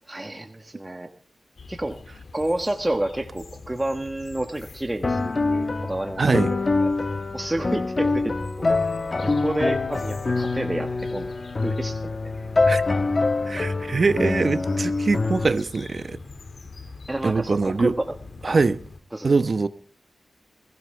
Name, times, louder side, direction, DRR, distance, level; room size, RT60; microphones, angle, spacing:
voice 1, 0.1-1.1 1.7-2.0 2.3-7.0 7.3-8.7 9.2-11.3 11.6-12.3 12.9-13.0 17.1-18.0 18.5-18.6 19.1-19.3, right 1 dB, 15° right, 1.4 m, -30 dB
sound 1, 1.6-19.0, left 3 dB, 60° left, 2.1 m, -44 dB
sound 2, 5.0-15.5, left 3 dB, 40° left, 1.2 m, -25 dB
voice 2, 6.2-6.5 12.7-12.8 13.5-16.2 17.2-17.9 18.4-18.8 19.2-19.7, right 4 dB, 50° right, 1.1 m, -22 dB
21.5 x 15.5 x 3.4 m
wide cardioid pair, 85°, 0 cm